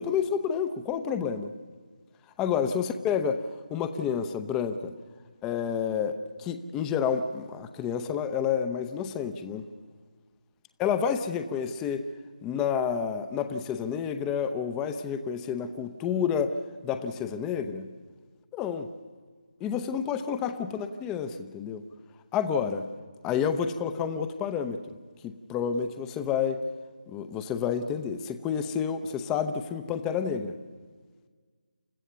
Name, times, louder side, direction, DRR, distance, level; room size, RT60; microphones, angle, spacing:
voice 1, 0.0-1.5 2.4-4.9 5.4-9.6 10.8-12.0 12.4-16.5 16.8-17.9 18.5-18.9 19.6-21.8 22.3-22.9 23.2-24.9 25.2-26.6 27.1-30.5, left 7 dB, 10° left, 9 dB, 0.7 m, -29 dB
28.5 x 14.5 x 6.9 m, 1.5 s
figure-of-eight pair, 155°, 4 cm